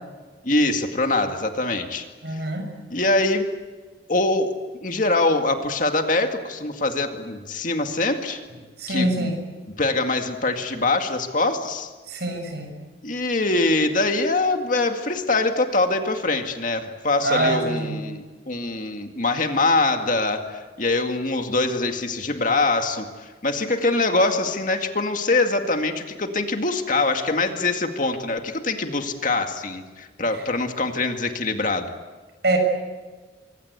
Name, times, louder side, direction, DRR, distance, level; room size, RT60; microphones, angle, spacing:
voice 1, 0.4-2.1 2.3-2.4 2.9-3.5 4.1-8.4 8.9-9.3 9.8-11.9 13.0-31.9, left 2 dB, 45° left, 5 dB, 2.1 m, -23 dB
voice 2, 2.2-2.7 8.8-9.4 12.1-12.7 17.2-18.0 32.4-32.6, right 1 dB, 60° right, 5 dB, 6.7 m, -24 dB
24.5 x 24.5 x 8.2 m, 1.4 s
head